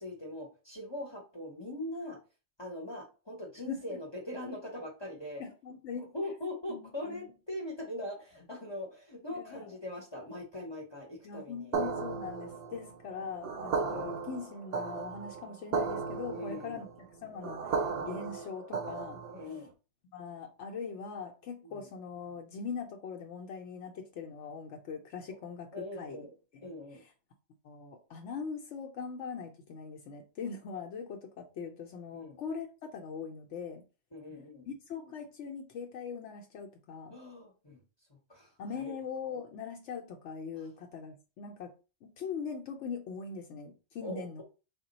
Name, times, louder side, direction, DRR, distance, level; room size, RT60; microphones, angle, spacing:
voice 1, 0.0-2.2 2.6-5.4 5.9-11.8 13.8-13.9 16.3-16.8 19.3-19.7 21.6-21.9 25.7-26.3 26.6-27.0 32.1-32.4 34.1-34.7 37.1-37.8 38.3-38.9 44.0-44.4, left 1 dB, 25° left, 0.7 m, -41 dB
voice 2, 3.7-4.0 5.4-6.1 6.7-7.3 9.3-9.7 11.2-16.9 17.2-19.2 20.1-26.3 26.5-27.1 27.6-33.8 34.7-37.1 38.6-41.7 42.0-44.4, left 6 dB, 75° left, 0.9 m, -41 dB
sound 1, 11.7-19.5, right 5 dB, 60° right, 0.6 m, -35 dB
3.5 x 2.1 x 3.9 m
omnidirectional pair, 1.3 m